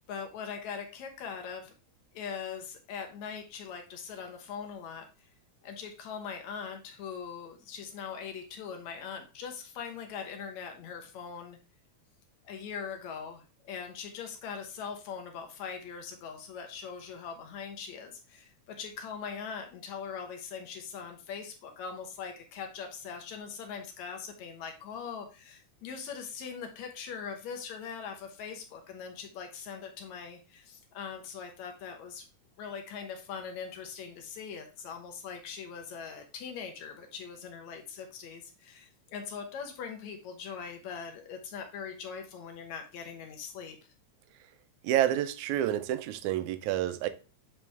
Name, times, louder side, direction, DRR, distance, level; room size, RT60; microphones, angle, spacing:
voice 1, 0.1-1.7 2.1-5.3 5.6-11.6 12.4-32.3 32.6-43.8, left 6 dB, 70° left, 2.2 m, -41 dB
voice 2, 44.8-47.1, right 12 dB, 80° right, 1.9 m, -29 dB
7.7 x 4.3 x 3.4 m
omnidirectional pair, 3.5 m